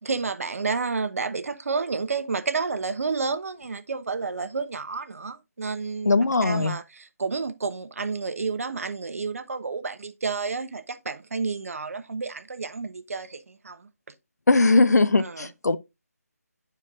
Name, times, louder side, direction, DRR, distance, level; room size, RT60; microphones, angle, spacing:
voice 1, 0.0-6.1 6.4-13.9 15.2-15.5, right 4 dB, 60° right, 0.8 m, -30 dB
voice 2, 6.0-6.8 14.5-15.8, left 3 dB, 80° left, 0.6 m, -20 dB
11.0 x 4.5 x 2.4 m
figure-of-eight pair, 160°, 9 cm